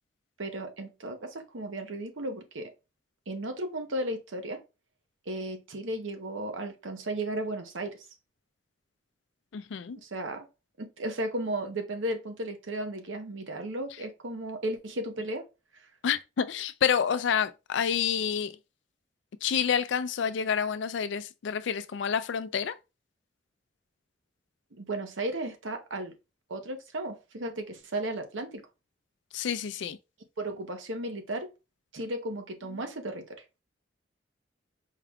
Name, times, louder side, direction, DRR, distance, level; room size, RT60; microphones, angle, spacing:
voice 1, 0.4-2.7 3.3-4.6 5.3-8.0 10.0-10.5 10.8-15.5 15.8-15.9 24.8-26.1 26.5-28.7 30.4-31.5 31.9-33.4, right 1 dB, 85° right, 0.9 m, -35 dB
voice 2, 9.5-10.0 16.0-18.6 19.4-22.7 29.3-30.0 32.7-32.8, left 7 dB, 70° left, 0.4 m, -28 dB
4.6 x 2.3 x 3.5 m
head